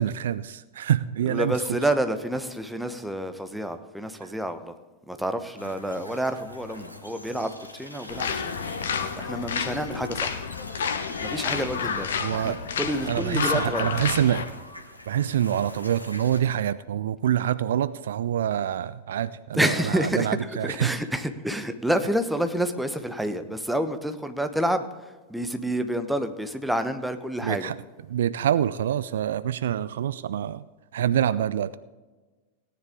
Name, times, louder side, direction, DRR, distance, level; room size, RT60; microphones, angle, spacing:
voice 1, 0.0-1.6 4.2-4.3 12.2-12.6 13.1-14.5 15.1-21.0 27.4-27.8 28.1-30.6 30.9-31.8, right 10 dB, 60° right, 16 dB, 0.3 m, -26 dB
voice 2, 1.3-4.7 5.1-8.5 9.2-10.4 11.2-13.9 19.5-20.4 20.6-24.9 25.3-27.7, right 1 dB, ahead, 8 dB, 1.0 m, -28 dB
sound 1, 5.6-16.4, left 1 dB, 85° left, 1.4 m, -43 dB
sound 2, 8.1-14.5, left 6 dB, 65° left, 1.0 m, -30 dB
17.5 x 10.0 x 3.7 m, 1.3 s
figure-of-eight pair, 90°, 0 cm